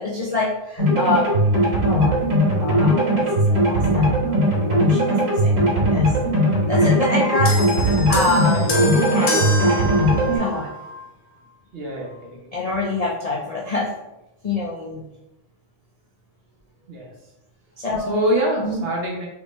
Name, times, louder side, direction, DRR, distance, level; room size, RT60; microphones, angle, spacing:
voice 1, 0.0-1.3 1.8-6.1 6.7-10.0 10.3-10.7 12.5-13.9 14.4-15.0 17.8-18.2 18.6-18.9, left 2 dB, 45° left, -5 dB, 0.5 m, -26 dB
sound 1, 0.8-10.4, equal, 80° right, 1.6 m, -19 dB
sound 2, 7.5-11.1 12.0-12.1, left 1 dB, 75° left, 1.0 m, -27 dB
voice 2, 11.7-12.4 16.9-17.1 18.1-19.3, right 1 dB, 50° right, -2 dB, 1.1 m, -24 dB
3.3 x 3.1 x 3.1 m, 0.89 s
omnidirectional pair, 1.3 m